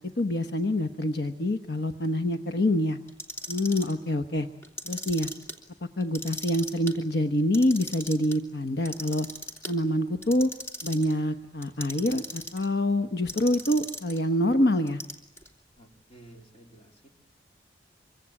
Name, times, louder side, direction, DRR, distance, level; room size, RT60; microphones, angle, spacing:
voice 1, 0.0-3.0 3.5-4.5 4.8-5.3 6.0-9.3 9.7-10.5 10.8-15.0, left 1 dB, 60° left, 8 dB, 1.1 m, -26 dB
Clock, 3.1-3.9 4.6-5.5 6.0-6.9 7.4-8.3 8.9-9.7 10.2-11.1 11.6-12.7 13.3-14.2 14.9-15.5, equal, 15° left, 2.9 m, -38 dB
voice 2, 15.8-17.1, right 1 dB, 35° left, 2 dB, 3.4 m, -53 dB
26.5 x 24.0 x 8.8 m, 0.80 s
head